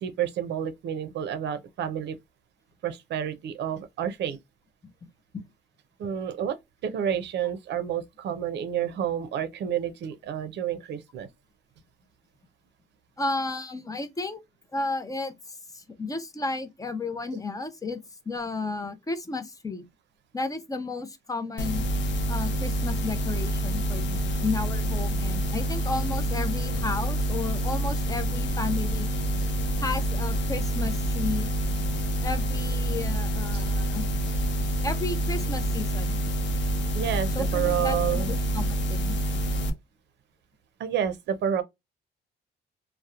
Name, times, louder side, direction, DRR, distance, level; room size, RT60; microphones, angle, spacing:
voice 1, 0.0-2.2 2.8-4.4 6.0-6.6 6.8-11.3 33.5-33.7 36.9-38.3 40.8-41.6, right 9 dB, 75° right, 0.5 m, -29 dB
voice 2, 13.2-14.4 14.7-18.0 18.3-19.8 20.3-21.8 22.3-29.1 29.8-31.5 32.2-34.1 34.8-36.2 37.3-39.1, left 3 dB, 20° left, 0.5 m, -33 dB
sound 1, 21.6-39.7, right 1 dB, 80° left, 0.6 m, -27 dB
2.8 x 2.0 x 2.3 m
cardioid pair, 115°, 18 cm